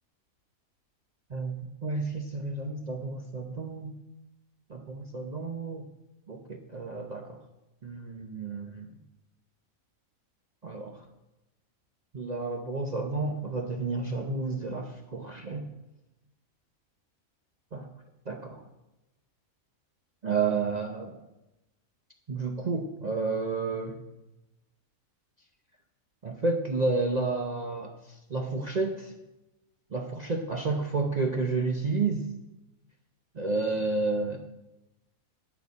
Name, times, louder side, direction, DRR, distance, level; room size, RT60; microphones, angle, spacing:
voice 1, 1.8-3.9 4.7-5.9 6.3-7.4 7.8-8.9 10.6-11.1 12.1-15.7 17.7-17.9 18.3-18.7 20.2-21.2 22.3-24.0 26.2-29.1 29.9-32.3 33.3-34.4, right 3 dB, 40° right, 3 dB, 0.7 m, -31 dB
9.1 x 6.5 x 8.2 m, 0.97 s
omnidirectional pair, 1.5 m